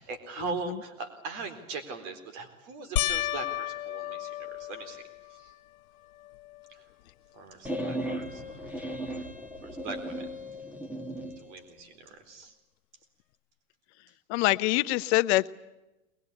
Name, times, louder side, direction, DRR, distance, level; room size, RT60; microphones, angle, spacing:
voice 1, 0.0-5.5 6.7-6.8 7.3-8.9 9.1-9.3 9.6-10.4 11.4-12.5, right 4 dB, 55° right, 9 dB, 4.1 m, -41 dB
sound 1, 3.0-5.6 6.2-6.7 7.1-7.2 10.4-10.5, left 14 dB, 85° left, 0.8 m, -33 dB
sound 2, 7.6-11.4, right 1 dB, 5° right, 1.4 m, -36 dB
voice 2, 14.3-15.5, left 19 dB, 50° left, 14 dB, 0.8 m, -24 dB
21.5 x 21.5 x 9.8 m, 0.99 s
supercardioid pair, 135°, 42 cm